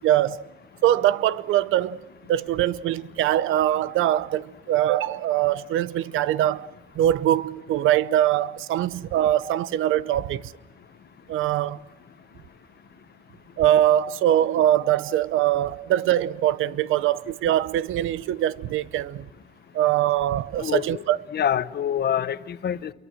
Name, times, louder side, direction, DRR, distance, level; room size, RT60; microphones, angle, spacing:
voice 1, 0.0-0.4 0.8-6.7 7.0-10.5 11.3-11.8 13.6-19.3 19.7-21.2, right 12 dB, 85° right, 0.7 m, -22 dB
voice 2, 20.6-21.0 21.3-22.9, left 9 dB, 55° left, 1.1 m, -26 dB
29.0 x 23.0 x 6.2 m
cardioid pair, 90°, 20 cm